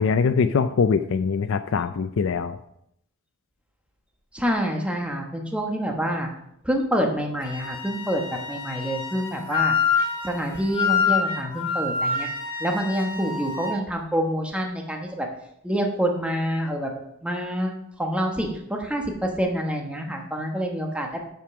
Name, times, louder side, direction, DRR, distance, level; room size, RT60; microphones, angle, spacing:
voice 1, 0.0-2.6, left 5 dB, 65° left, 9 dB, 0.4 m, -22 dB
voice 2, 4.3-6.3 6.6-9.8 10.2-12.3 12.6-15.3 15.6-16.9 17.2-21.2, equal, 5° right, 2 dB, 1.1 m, -27 dB
Wind instrument woodwind instrument, 7.4-13.8, left 5 dB, 25° left, 1.5 m, -27 dB
7.4 x 5.3 x 6.0 m, 0.77 s
head